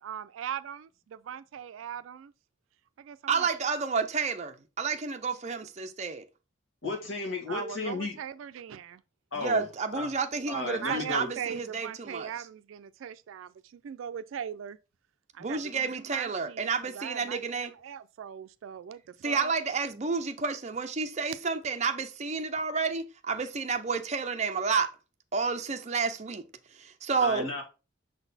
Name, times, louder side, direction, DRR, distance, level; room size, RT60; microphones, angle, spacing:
voice 1, 0.0-2.3 3.0-3.5 7.5-9.0 10.5-14.8 15.3-19.5, right 8 dB, 85° right, 0.3 m, -40 dB
voice 2, 3.3-6.2 9.4-12.3 15.4-17.7 19.2-24.9 25.3-26.4 26.8-27.5, right 5 dB, 35° right, 0.6 m, -30 dB
voice 3, 6.8-8.2 9.3-9.7 9.9-10.1 10.5-11.3 27.2-27.6, left 3 dB, 75° left, 2.1 m, -33 dB
6.3 x 4.0 x 4.0 m
head